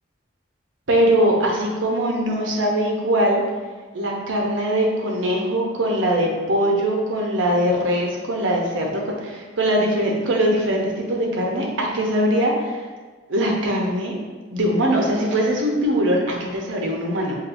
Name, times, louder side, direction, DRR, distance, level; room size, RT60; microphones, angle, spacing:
voice 1, 0.9-3.4 3.9-12.8 13.3-14.2 14.5-17.4, equal, 85° right, -1 dB, 0.9 m, -21 dB
6.4 x 2.6 x 2.6 m, 1.4 s
head